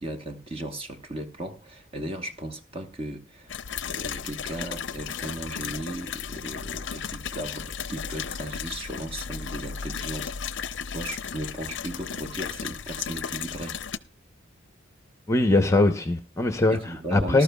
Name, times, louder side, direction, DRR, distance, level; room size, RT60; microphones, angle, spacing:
voice 1, 0.0-3.5 3.9-13.8 16.7-17.4, right 1 dB, 30° right, 1.1 m, -36 dB
sound 1, 3.5-14.0, left 7 dB, 60° left, 0.5 m, -35 dB
voice 2, 15.3-17.4, left 2 dB, 15° left, 0.8 m, -21 dB
19.5 x 12.5 x 2.3 m
head